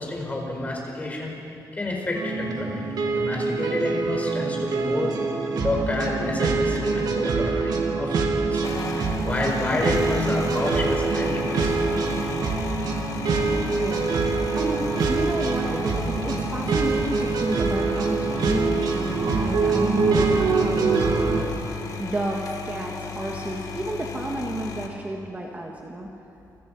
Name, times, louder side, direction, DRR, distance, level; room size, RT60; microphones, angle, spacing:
voice 1, 0.0-1.4 1.8-5.1 5.6-8.6 9.2-11.8, left 2 dB, 20° left, 0 dB, 4.9 m, -29 dB
sound 1, 2.1-21.4, right 4 dB, 65° right, 2.9 m, -25 dB
sound 2, 6.7-7.8 8.5-24.9, left 5 dB, 55° left, 2.2 m, -35 dB
voice 2, 13.7-14.0 14.5-21.6 22.0-26.1, right 1 dB, 20° right, 0 dB, 1.9 m, -31 dB
29.5 x 24.5 x 5.6 m, 2.7 s
wide cardioid pair, 165°, 7 cm